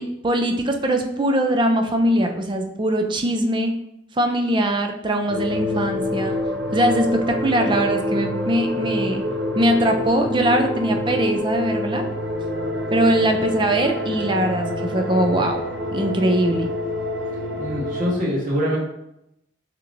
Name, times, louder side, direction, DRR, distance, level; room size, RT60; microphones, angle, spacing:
voice 1, 0.0-3.7 4.2-6.4 6.7-9.2 9.6-12.1 12.9-15.6 15.9-16.7, right 1 dB, 25° right, 5 dB, 0.4 m, -21 dB
sound 1, 5.3-18.1, left 1 dB, 65° right, 0.7 m, -26 dB
voice 2, 17.6-18.8, equal, 45° right, -4 dB, 1.5 m, -24 dB
6.7 x 2.9 x 2.6 m, 0.84 s
head